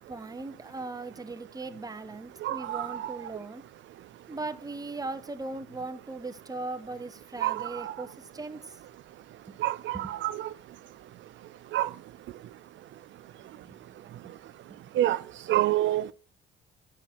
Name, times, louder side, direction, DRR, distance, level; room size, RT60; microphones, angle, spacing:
voice 1, 0.1-3.6 4.3-8.8 9.9-10.0 14.7-14.8, right 3 dB, 20° right, 1.1 m, -38 dB
voice 2, 2.4-3.2 7.4-8.0 9.6-10.5 11.7-11.9 15.0-15.2 15.5-16.1, right 14 dB, 70° right, 0.5 m, -27 dB
8.8 x 6.0 x 6.0 m
cardioid pair, 90°, 20 cm